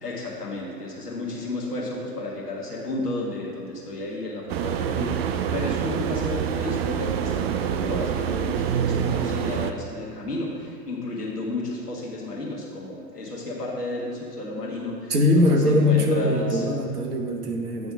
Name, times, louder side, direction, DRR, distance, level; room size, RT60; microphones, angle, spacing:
voice 1, 0.0-16.6, left 2 dB, 80° left, -4 dB, 1.7 m, -32 dB
sound 1, 4.5-9.7, right 8 dB, 45° right, 0.4 m, -26 dB
voice 2, 15.1-17.9, left 1 dB, 75° right, 2 dB, 1.1 m, -21 dB
9.0 x 3.5 x 5.7 m, 2.6 s
figure-of-eight pair, 95°, 46 cm